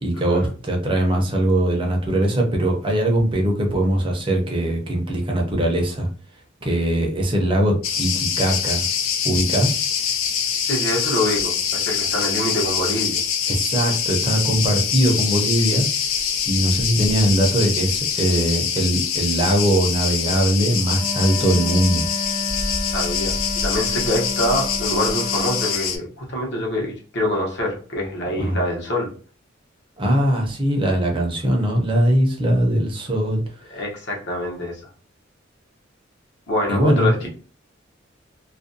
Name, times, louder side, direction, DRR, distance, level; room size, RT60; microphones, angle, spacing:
voice 1, 0.0-6.1 6.6-8.9 9.2-9.8 13.5-15.9 16.4-22.1 28.2-28.6 30.0-33.4 36.7-37.3, right 1 dB, 25° right, 1 dB, 0.6 m, -21 dB
Cricket, 7.8-26.0, left 7 dB, 90° left, 0.4 m, -24 dB
voice 2, 10.6-13.2 22.9-29.1 33.7-34.8 36.5-37.3, left 1 dB, 60° left, 0 dB, 0.9 m, -25 dB
Wind instrument woodwind instrument, 20.9-25.8, left 2 dB, 30° left, 0.4 m, -31 dB
2.5 x 2.1 x 2.6 m, 0.39 s
head